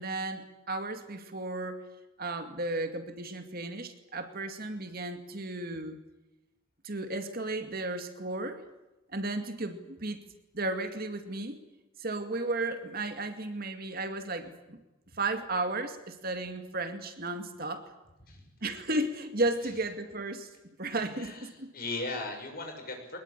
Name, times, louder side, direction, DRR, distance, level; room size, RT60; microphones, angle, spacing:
voice 1, 0.0-1.8 2.2-6.0 6.8-8.6 9.1-10.2 10.5-11.6 12.0-14.8 15.1-17.9 18.6-20.5 20.8-21.7, right 2 dB, 45° right, 7 dB, 2.3 m, -34 dB
voice 2, 20.8-23.2, left 2 dB, 45° left, 4 dB, 6.4 m, -38 dB
23.0 x 21.0 x 10.0 m, 1.0 s
head